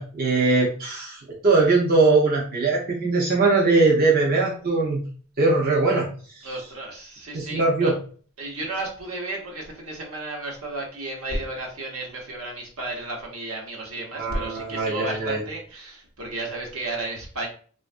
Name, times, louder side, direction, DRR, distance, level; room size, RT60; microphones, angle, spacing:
voice 1, 0.0-5.0 5.4-6.1 7.3-7.9 14.1-15.4, right 3 dB, 45° right, -3 dB, 0.7 m, -21 dB
voice 2, 6.4-7.9 8.4-17.5, right 2 dB, 80° right, -1 dB, 1.0 m, -33 dB
3.2 x 2.4 x 2.5 m, 0.43 s
head